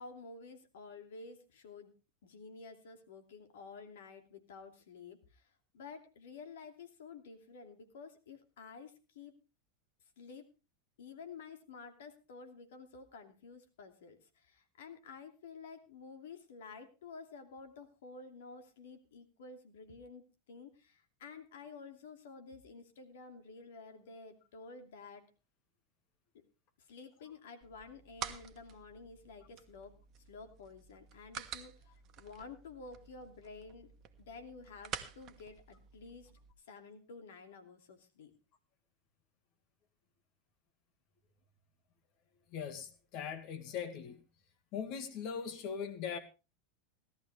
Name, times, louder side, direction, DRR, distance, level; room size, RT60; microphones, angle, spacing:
voice 1, 0.0-1.9 2.2-9.4 10.2-10.5 11.0-25.2 26.3-26.4 26.8-29.9 30.3-33.9 34.2-36.3 36.7-38.3, left 4 dB, 70° left, 2.6 m, -51 dB
sound 1, 27.6-36.5, right 9 dB, 40° right, 1.4 m, -49 dB
voice 2, 42.5-44.2 44.7-46.2, left 7 dB, 50° left, 2.2 m, -40 dB
17.5 x 13.0 x 3.4 m
hypercardioid pair, 90°, 0 cm